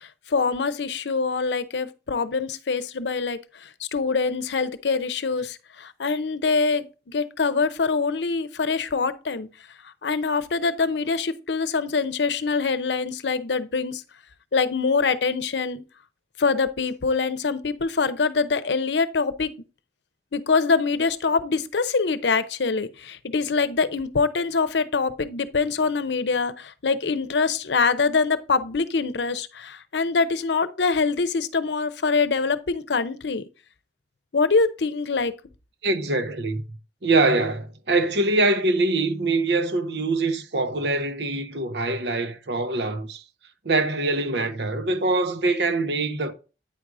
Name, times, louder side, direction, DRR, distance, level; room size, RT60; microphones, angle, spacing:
voice 1, 0.3-9.5 10.0-14.0 14.5-15.8 16.4-19.5 20.3-33.4 34.3-35.3, left 4 dB, 85° left, 0.7 m, -24 dB
voice 2, 35.8-43.2 43.6-46.3, right 2 dB, 75° right, 1.0 m, -24 dB
9.2 x 4.8 x 3.8 m
head